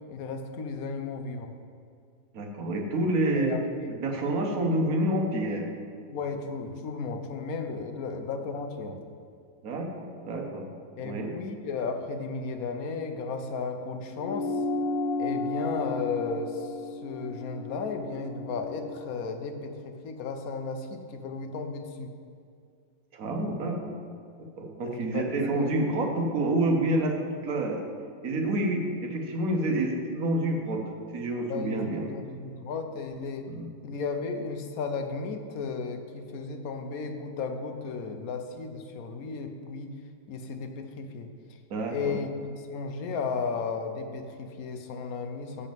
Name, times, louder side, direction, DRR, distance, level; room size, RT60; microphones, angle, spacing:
voice 1, 0.1-1.5 3.3-3.9 6.1-9.0 11.0-14.5 15.2-22.1 24.8-25.7 25.9-26.1 31.5-31.8 32.1-33.5 33.8-40.0 40.3-41.3 41.9-45.7, left 4 dB, 60° left, 5 dB, 1.1 m, -34 dB
voice 2, 2.3-3.6 4.0-5.6 9.6-10.7 11.0-11.3 23.1-23.9 24.6-27.2 27.4-27.8 28.2-30.8 31.1-32.0 33.5-33.7 41.7-42.2, right 1 dB, 55° right, 1 dB, 1.5 m, -28 dB
sound 1, 14.2-19.0, left 2 dB, 80° left, 1.4 m, -33 dB
11.0 x 4.2 x 7.5 m, 2.3 s
omnidirectional pair, 2.0 m